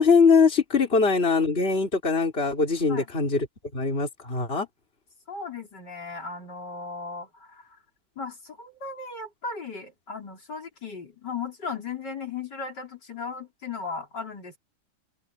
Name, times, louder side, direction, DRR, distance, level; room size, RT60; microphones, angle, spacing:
voice 1, 0.0-3.5 3.7-4.7, left 4 dB, 30° left, 3.9 m, -21 dB
voice 2, 5.3-7.8 8.2-14.6, left 4 dB, 60° left, 4.9 m, -36 dB
open air
omnidirectional pair, 2.1 m